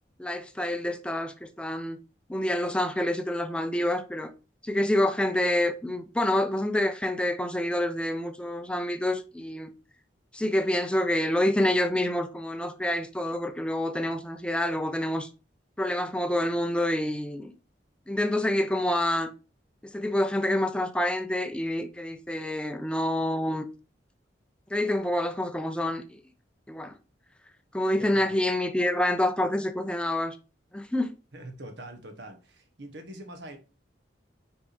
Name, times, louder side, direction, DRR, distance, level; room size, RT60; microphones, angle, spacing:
voice 1, 0.2-2.0 2.3-4.3 4.6-9.7 10.3-15.3 15.8-17.5 18.1-19.3 19.8-23.7 24.7-26.2 26.7-27.0 27.7-30.4 30.7-31.1, left 1 dB, 5° left, 0.6 m, -27 dB
voice 2, 28.0-28.4 31.3-33.6, right 1 dB, 70° right, 1.4 m, -43 dB
6.1 x 4.7 x 4.2 m
head